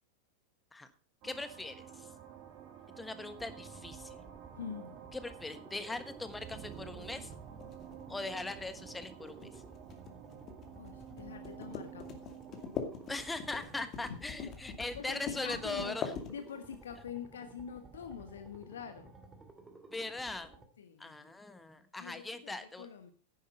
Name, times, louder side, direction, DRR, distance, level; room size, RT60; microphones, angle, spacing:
voice 1, 1.2-2.1 3.0-4.2 5.1-7.3 8.1-9.6 13.1-16.1 19.9-20.5 21.0-22.9, left 2 dB, 10° left, 11 dB, 1.4 m, -40 dB
sound 1, 1.2-15.4, right 10 dB, 40° right, 2.5 m, -51 dB
sound 2, 3.3-20.7, right 3 dB, 10° right, 2.1 m, -55 dB
voice 2, 4.5-5.0 10.7-12.2 14.1-14.5 14.9-19.1 20.8-21.2 22.0-23.1, left 7 dB, 65° left, 8 dB, 1.2 m, -45 dB
sound 3, 5.8-16.8, left 7 dB, 30° left, 2.3 m, -44 dB
11.0 x 9.9 x 5.4 m, 0.37 s
figure-of-eight pair, 90°, 0 cm